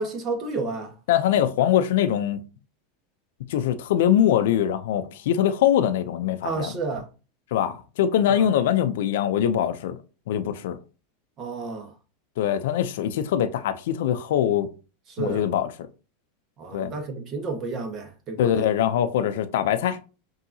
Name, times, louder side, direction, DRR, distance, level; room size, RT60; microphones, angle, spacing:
voice 1, 0.0-0.9 6.4-7.1 8.3-8.5 11.4-11.9 15.1-15.4 16.6-18.7, right 3 dB, 40° right, 1.2 m, -31 dB
voice 2, 1.1-2.4 3.5-6.8 7.5-10.0 10.3-10.8 12.4-14.7 15.2-15.9 16.7-16.9 18.4-20.0, left 10 dB, 75° left, 0.5 m, -23 dB
5.5 x 2.8 x 2.7 m
hypercardioid pair, 115°, 0 cm